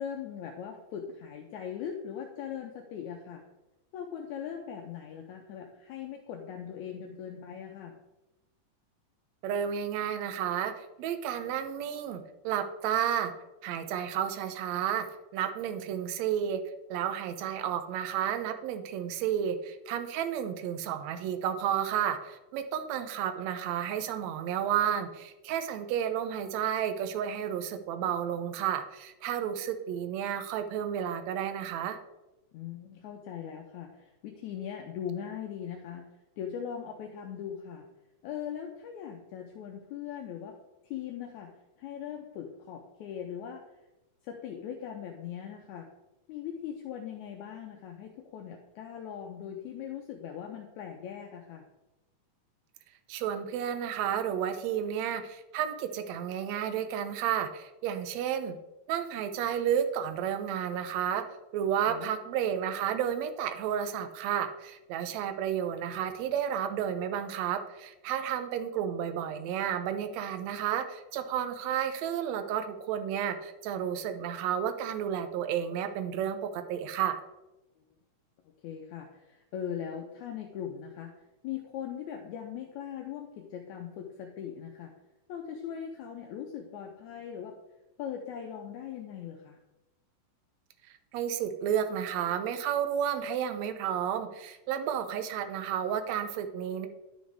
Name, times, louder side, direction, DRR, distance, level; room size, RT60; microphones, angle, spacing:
voice 1, 0.0-3.4 3.9-7.9 15.9-16.0 32.5-36.1 36.4-37.9 38.2-40.6 40.8-43.6 44.2-45.9 46.3-51.7 61.9-62.1 78.6-81.1 81.4-84.9 85.3-87.6 88.0-89.6, left 8 dB, 80° left, 2 dB, 1.8 m, -40 dB
voice 2, 9.4-13.3 13.6-15.0 15.3-16.6 16.9-32.0 53.1-58.6 58.9-61.2 61.5-77.2 91.1-96.9, right 9 dB, 80° right, 8 dB, 1.6 m, -31 dB
11.0 x 6.4 x 3.5 m, 1.0 s
omnidirectional pair, 3.9 m